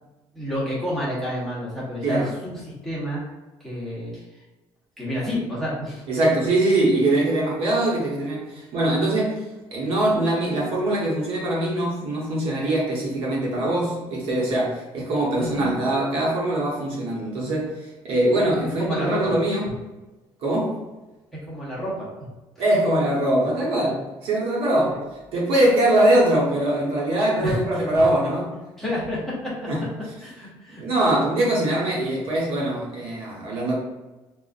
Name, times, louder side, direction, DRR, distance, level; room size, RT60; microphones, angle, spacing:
voice 1, 0.3-3.2 3.6-4.4 5.0-6.4 15.4-15.8 18.4-18.5 18.8-19.3 21.5-22.3 24.9-25.0 27.4-27.9 28.8-29.5 30.2-30.8, equal, ahead, -8 dB, 1.0 m, -30 dB
voice 2, 6.1-9.4 9.7-19.6 20.4-20.8 22.6-25.0 25.3-28.5 29.7-29.8 30.8-33.7, right 1 dB, 70° right, -4 dB, 1.1 m, -22 dB
3.9 x 2.4 x 2.5 m, 1.1 s
cardioid pair, 150°, 10 cm